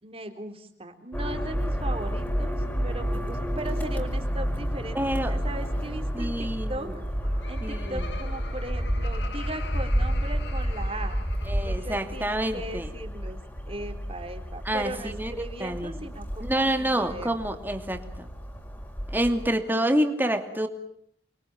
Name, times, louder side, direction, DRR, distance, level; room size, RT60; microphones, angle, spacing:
voice 1, 0.0-6.9 7.5-11.2 11.6-13.4 13.7-17.4, right 1 dB, 35° right, 6 dB, 3.8 m, -38 dB
sound 1, 1.1-19.5, equal, 10° left, 5.3 m, -30 dB
voice 2, 4.9-5.4 6.1-6.9 7.6-8.0 11.4-12.9 14.6-16.1 16.4-18.3 19.1-20.7, right 1 dB, 10° right, 6 dB, 2.6 m, -28 dB
Laughter, 6.9-12.2, left 4 dB, 80° left, 2.8 m, -44 dB
29.5 x 23.5 x 7.3 m, 0.68 s
head